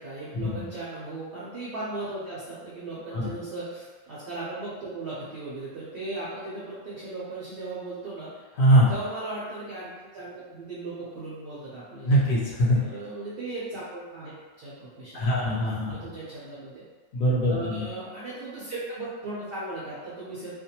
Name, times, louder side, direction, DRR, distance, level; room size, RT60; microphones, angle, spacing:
voice 1, 0.0-8.5 8.9-12.1 12.8-15.6 15.9-16.8 17.4-20.5, right 2 dB, 60° right, -8 dB, 0.6 m, -37 dB
voice 2, 8.6-8.9 12.0-12.8 15.1-15.9 17.1-17.9, equal, 55° left, -6 dB, 0.8 m, -22 dB
2.5 x 2.2 x 2.8 m, 1.4 s
omnidirectional pair, 1.5 m